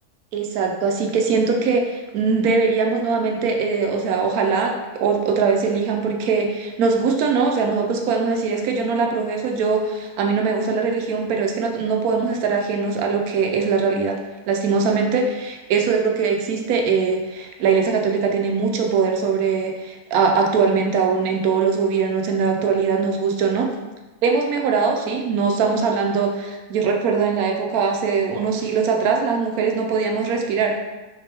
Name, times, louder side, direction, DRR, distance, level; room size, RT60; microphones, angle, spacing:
voice 1, 0.3-14.2 14.5-23.7 24.2-30.8, right 5 dB, 75° right, 2 dB, 1.0 m, -21 dB
4.0 x 2.9 x 3.3 m, 1.1 s
omnidirectional pair, 1.6 m